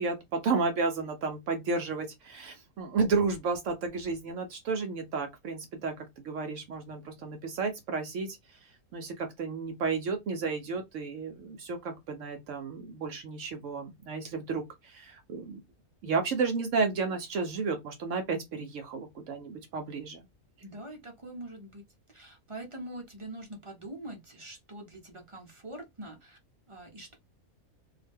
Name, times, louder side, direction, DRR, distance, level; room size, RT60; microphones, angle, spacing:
voice 1, 0.0-15.6 16.0-20.3, right 4 dB, 65° right, 0.9 m, -32 dB
voice 2, 20.6-21.8 22.1-26.4 26.7-27.1, right 1 dB, 40° right, 0.4 m, -44 dB
2.5 x 2.1 x 3.3 m
omnidirectional pair, 1.5 m